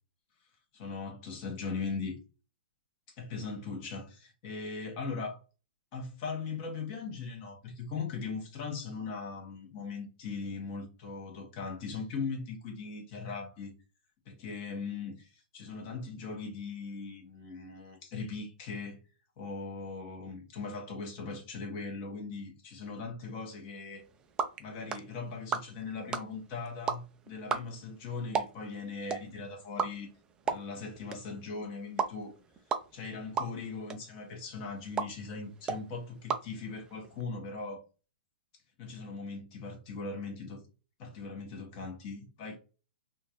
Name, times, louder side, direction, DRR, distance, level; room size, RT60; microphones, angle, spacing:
voice 1, 0.8-2.1 3.1-5.4 5.9-13.7 14.4-19.0 19.4-24.0 24.6-30.1 30.4-32.3 32.9-37.8 38.8-40.6 41.0-42.6, left 4 dB, 35° left, 1.4 m, -39 dB
sound 1, 23.9-37.2, right 6 dB, 15° right, 0.4 m, -38 dB
3.7 x 2.5 x 2.9 m
hypercardioid pair, 145°, 5 cm